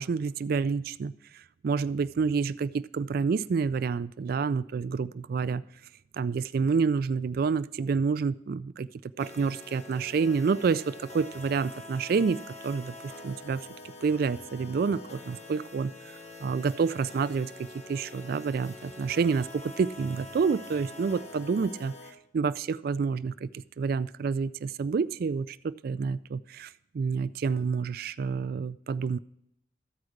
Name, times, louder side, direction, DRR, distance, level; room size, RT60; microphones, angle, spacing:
voice 1, 0.0-5.6 6.1-12.9 13.2-13.7 14.0-15.9 16.4-21.9 22.3-29.2, right 5 dB, 55° right, 15 dB, 0.3 m, -28 dB
sound 1, 9.2-22.1, left 2 dB, 35° left, 1.0 m, -45 dB
14.0 x 4.8 x 6.5 m, 0.74 s
head